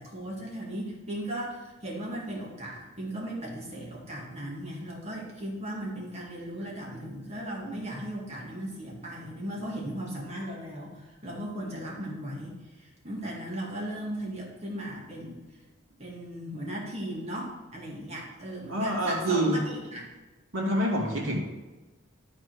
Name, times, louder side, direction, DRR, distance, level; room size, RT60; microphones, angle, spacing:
voice 1, 0.0-15.4 16.0-20.1, right 1 dB, 30° right, -3 dB, 1.9 m, -37 dB
voice 2, 18.7-19.6 20.5-21.4, right 1 dB, 75° right, -3 dB, 2.5 m, -26 dB
12.0 x 4.3 x 4.7 m, 1.2 s
head